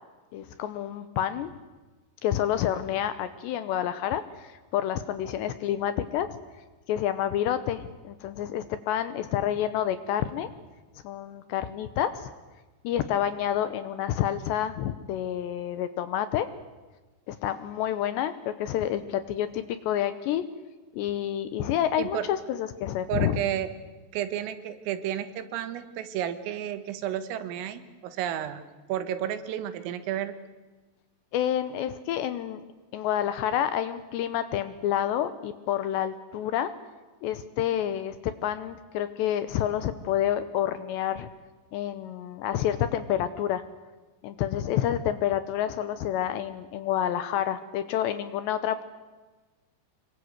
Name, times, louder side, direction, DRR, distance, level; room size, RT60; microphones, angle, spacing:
voice 1, 0.3-1.5 2.2-6.4 6.9-10.5 11.0-12.3 12.8-16.5 17.3-20.4 20.9-23.4 31.3-32.6 32.9-36.7 37.2-41.3 41.7-43.6 44.2-48.8, left 11 dB, 75° left, 12 dB, 2.7 m, -28 dB
voice 2, 23.1-23.7 24.1-30.3, right 10 dB, 85° right, 11 dB, 4.1 m, -32 dB
26.0 x 23.0 x 8.1 m, 1.2 s
omnidirectional pair, 5.8 m